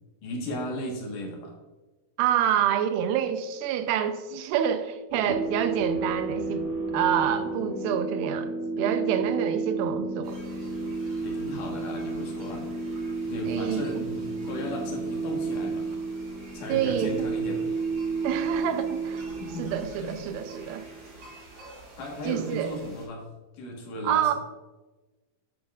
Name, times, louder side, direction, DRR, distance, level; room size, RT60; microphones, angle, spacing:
voice 1, 0.2-1.5 11.2-12.7 13.3-15.9 16.5-17.6 19.4-19.7 20.0-20.2 22.0-23.2 23.6-24.3, equal, 65° left, 0 dB, 2.9 m, -35 dB
voice 2, 2.2-6.7 6.9-10.4 13.5-13.9 16.7-17.3 18.2-19.3 19.6-20.8 22.3-22.7 24.0-24.3, right 9 dB, 90° right, 9 dB, 2.5 m, -27 dB
sound 1, 5.1-21.4, right 3 dB, 60° right, 3.3 m, -32 dB
sound 2, 10.2-23.1, right 1 dB, 45° right, 3.8 m, -49 dB
9.9 x 8.7 x 2.4 m, 1.2 s
omnidirectional pair, 4.1 m